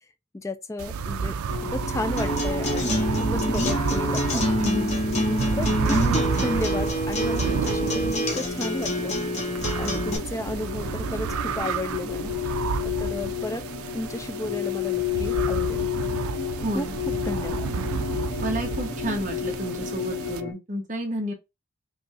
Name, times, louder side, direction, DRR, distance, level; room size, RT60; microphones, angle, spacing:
voice 1, 0.3-1.4 1.6-4.4 5.3-12.3 12.8-13.6 13.9-15.9 16.7-17.7, left 2 dB, 15° left, 0.3 m, -33 dB
sound 1, 0.8-20.4, right 6 dB, 90° right, 0.4 m, -31 dB
sound 2, 1.5-20.5, left 7 dB, 75° left, 1.2 m, -32 dB
Acoustic guitar, 2.2-10.2, equal, 30° left, 0.9 m, -27 dB
voice 2, 4.6-5.0 16.6-17.0 18.4-21.3, right 1 dB, 35° right, 1.0 m, -30 dB
5.2 x 2.3 x 2.8 m
head